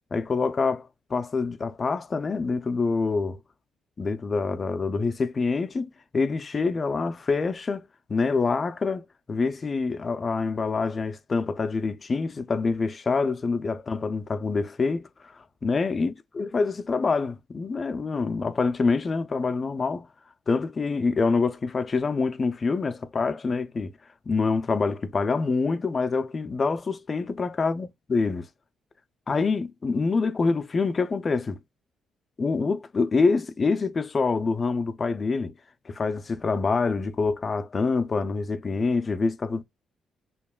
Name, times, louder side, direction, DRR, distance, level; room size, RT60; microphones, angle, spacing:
voice 1, 0.1-3.4 4.0-20.1 20.5-23.9 24.3-28.5 29.3-31.6 32.4-35.5 35.9-39.6, left 4 dB, 35° left, 0.4 m, -26 dB
4.7 x 2.9 x 2.3 m
cardioid pair, 90°, 0 cm